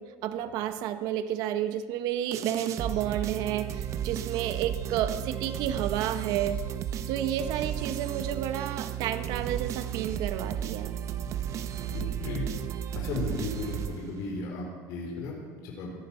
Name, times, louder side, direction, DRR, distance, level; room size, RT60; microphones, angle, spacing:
voice 1, 0.0-6.6 7.1-10.9, right 11 dB, 60° right, 9 dB, 1.2 m, -31 dB
sound 1, 2.3-14.4, right 10 dB, 45° right, 1.0 m, -34 dB
voice 2, 11.9-12.5 12.9-15.9, left 3 dB, 60° left, -1 dB, 4.1 m, -35 dB
18.0 x 13.0 x 5.8 m, 1.5 s
supercardioid pair, 125°, 7 cm